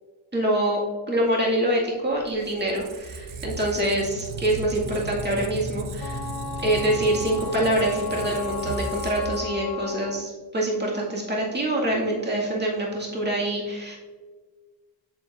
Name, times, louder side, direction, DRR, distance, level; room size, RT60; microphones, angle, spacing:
voice 1, 0.3-0.8 1.1-6.2 6.6-14.0, right 1 dB, 20° right, -4 dB, 2.1 m, -25 dB
Squeak, 2.2-9.9, right 2 dB, 80° right, 0.8 m, -36 dB
Wind instrument woodwind instrument, 6.0-10.3, left 7 dB, 50° left, 0.6 m, -35 dB
7.5 x 7.2 x 2.5 m, 1.4 s
wide cardioid pair, 85°, 49 cm